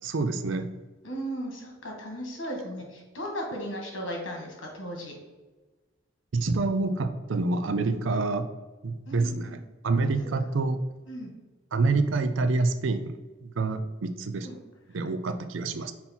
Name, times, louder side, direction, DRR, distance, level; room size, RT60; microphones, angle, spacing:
voice 1, 0.0-0.8 6.3-8.5 8.8-10.8 11.7-13.1 13.4-14.5 14.9-15.9, right 3 dB, 70° right, 11 dB, 0.5 m, -27 dB
voice 2, 1.0-5.1 9.1-9.6 10.0-10.3 11.1-11.3 14.4-14.6, equal, 70° left, 0 dB, 1.8 m, -36 dB
5.5 x 4.2 x 4.3 m, 1.2 s
head